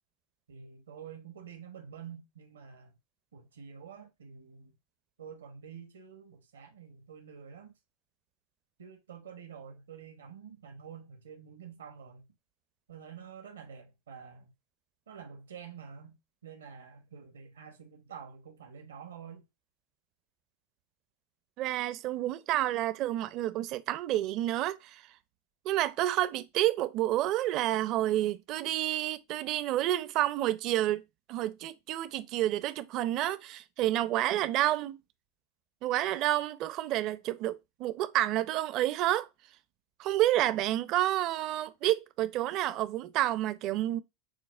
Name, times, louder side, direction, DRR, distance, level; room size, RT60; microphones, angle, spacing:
voice 1, 0.5-2.9 3.3-4.7 5.2-7.7 8.8-12.3 12.9-14.5 15.1-19.4, right 7 dB, 85° right, 0.9 m, -48 dB
voice 2, 21.6-25.0 25.6-31.0 31.3-35.0 35.8-39.3 40.0-44.0, right 14 dB, 45° right, 0.5 m, -29 dB
6.2 x 2.1 x 2.4 m
hypercardioid pair, 100°, 0 cm